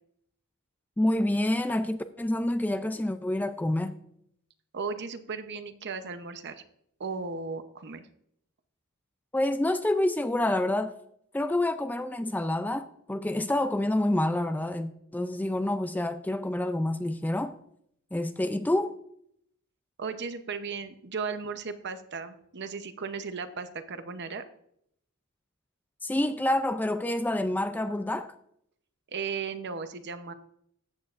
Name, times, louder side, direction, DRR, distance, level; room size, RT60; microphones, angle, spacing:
voice 1, 1.0-3.9 9.3-10.9 11.3-17.6 18.1-18.9 26.0-28.4, left 1 dB, 10° left, 0.3 m, -28 dB
voice 2, 4.7-6.6 7.0-8.1 20.0-24.4 29.1-30.3, right 5 dB, 50° right, 0.8 m, -36 dB
14.5 x 8.7 x 2.5 m
head